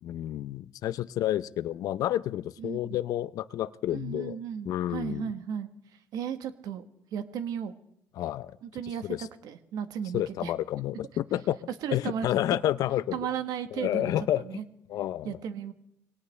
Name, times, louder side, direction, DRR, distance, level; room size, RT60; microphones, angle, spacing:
voice 1, 0.0-4.4 4.7-5.3 8.2-8.5 9.0-9.3 10.1-11.6 11.9-13.2 13.7-14.6 14.9-15.4, left 12 dB, 70° left, 16 dB, 0.6 m, -30 dB
voice 2, 2.6-3.0 3.9-5.7 6.1-6.8 7.1-7.7 8.6-10.5 11.8-12.3 13.1-14.6 15.2-15.7, right 8 dB, 75° right, 10 dB, 1.3 m, -35 dB
22.5 x 18.0 x 3.3 m, 0.78 s
cardioid pair, 85°, 6 cm